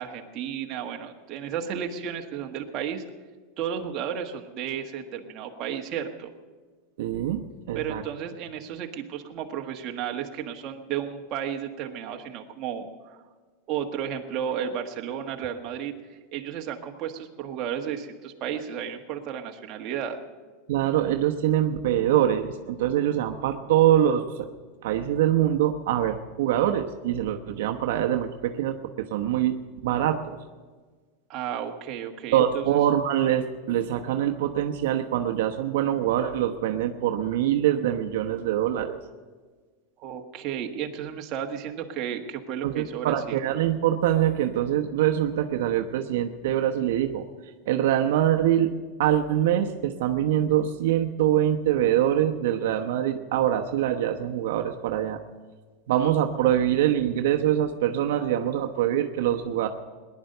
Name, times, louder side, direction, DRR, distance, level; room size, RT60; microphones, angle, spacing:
voice 1, 0.0-3.0 3.6-6.3 7.7-13.2 13.7-20.2 31.3-32.8 40.0-43.4, right 8 dB, 35° right, 3 dB, 1.5 m, -33 dB
voice 2, 7.0-8.0 20.7-24.5 24.8-30.4 32.3-39.0 42.6-47.3 47.6-48.7 49.0-55.2 55.9-59.7, right 11 dB, 75° right, 4 dB, 1.0 m, -24 dB
19.5 x 11.0 x 6.7 m, 1.4 s
supercardioid pair, 150°, 0 cm